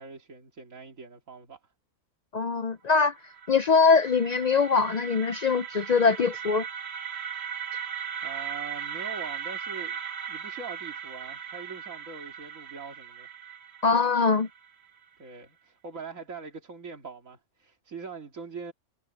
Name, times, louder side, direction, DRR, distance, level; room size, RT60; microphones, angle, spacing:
voice 1, 0.0-1.7 7.6-7.8 8.2-10.0 10.3-13.3 15.2-18.7, right 5 dB, 90° right, 2.6 m, -42 dB
voice 2, 2.3-3.1 3.5-6.7 13.8-14.5, left 5 dB, 65° left, 0.4 m, -22 dB
sound 1, 3.0-15.0, right 8 dB, 55° right, 1.6 m, -38 dB
omnidirectional pair, 1.3 m